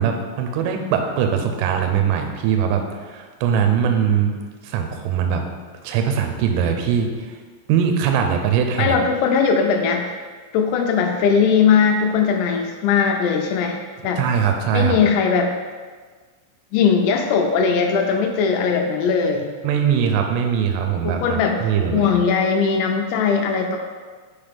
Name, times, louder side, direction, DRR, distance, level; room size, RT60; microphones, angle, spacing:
voice 1, 0.0-4.3 4.6-5.4 5.8-7.3 7.7-9.0 14.2-15.0 19.6-22.1, right 7 dB, 80° right, 4 dB, 3.0 m, -21 dB
voice 2, 8.8-10.1 10.5-14.2 14.7-15.5 16.7-19.5 21.0-23.8, left 6 dB, 90° left, 3 dB, 3.4 m, -19 dB
6.6 x 5.7 x 3.5 m, 1.5 s
omnidirectional pair, 5.9 m